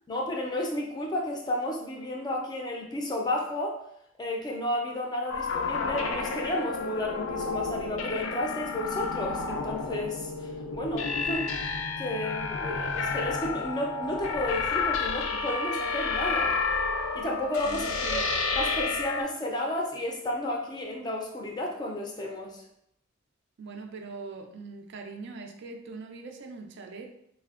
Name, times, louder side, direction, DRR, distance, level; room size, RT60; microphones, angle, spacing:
voice 1, 0.1-3.8 4.2-10.3 10.7-11.5 12.0-16.6 17.1-18.2 18.6-22.6, left 1 dB, 20° left, 0 dB, 0.4 m, -32 dB
sound 1, 5.3-19.2, left 4 dB, 85° left, 0.4 m, -30 dB
voice 2, 17.6-18.3 23.6-27.1, right 4 dB, 60° right, 4 dB, 0.3 m, -41 dB
3.3 x 2.1 x 2.3 m, 0.74 s
head